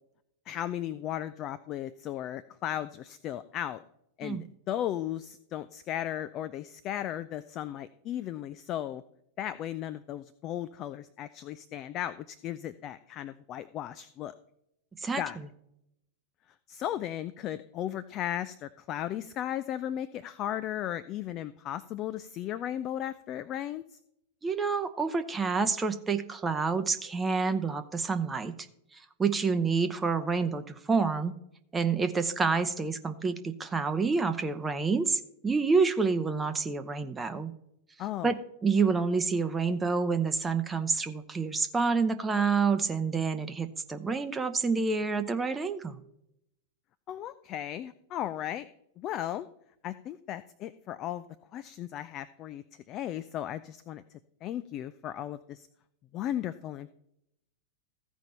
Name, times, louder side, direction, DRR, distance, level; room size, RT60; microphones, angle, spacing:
voice 1, 0.5-3.8 4.2-9.0 9.4-14.3 15.2-15.4 16.7-24.0 38.0-38.3 47.1-48.7 49.0-49.5 49.8-51.3 51.5-54.0 54.4-55.7 56.1-56.9, left 11 dB, 35° left, 14 dB, 0.4 m, -36 dB
voice 2, 24.4-28.5 29.2-31.3 31.7-37.5 38.2-46.0, right 4 dB, 15° right, 9 dB, 0.7 m, -28 dB
15.0 x 5.2 x 4.3 m, 0.78 s
figure-of-eight pair, 90°, 0 cm